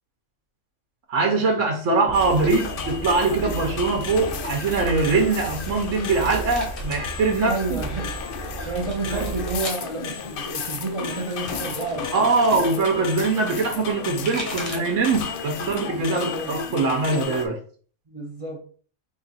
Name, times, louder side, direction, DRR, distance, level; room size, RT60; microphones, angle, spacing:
voice 1, 1.1-7.8 8.6-8.7 9.1-9.3 12.1-17.6, right 3 dB, 65° right, 1.0 m, -22 dB
sound 1, 2.1-17.5, left 6 dB, 75° left, 0.5 m, -33 dB
sound 2, 2.1-9.6, right 5 dB, 10° right, 1.0 m, -35 dB
sound 3, 5.4-7.1 7.4-8.0 8.7-9.9 10.9-12.6 13.9-15.0 15.4-15.9 16.3-17.2, left 1 dB, 30° left, 0.7 m, -38 dB
voice 2, 7.4-8.1 8.6-12.3 16.1-16.6 18.1-18.6, right 3 dB, 35° right, 0.5 m, -30 dB
3.6 x 2.4 x 4.0 m
omnidirectional pair, 1.5 m